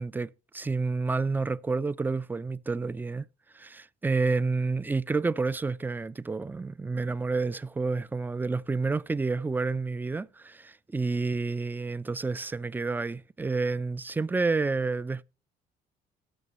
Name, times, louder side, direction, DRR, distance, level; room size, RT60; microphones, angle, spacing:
voice 1, 0.0-3.3 3.5-15.2, right 3 dB, 10° right, 0.4 m, -29 dB
18.0 x 6.6 x 3.0 m
cardioid pair, 110°, 17 cm